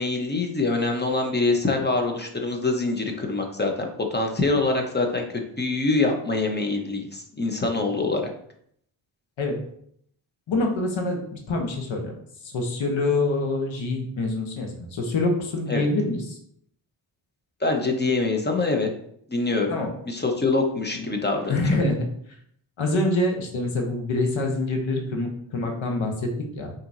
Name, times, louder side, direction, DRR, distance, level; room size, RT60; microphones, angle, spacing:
voice 1, 0.0-5.2 5.6-8.3 15.7-15.8 17.6-18.9 19.3-19.7 20.1-21.6, left 3 dB, 20° left, 3 dB, 1.0 m, -24 dB
voice 2, 10.5-12.1 12.4-16.4 19.7-19.9 20.9-21.1 21.5-22.1 22.8-26.7, left 2 dB, 70° left, 3 dB, 1.1 m, -26 dB
5.5 x 2.9 x 2.6 m, 0.67 s
cardioid pair, 55°, 48 cm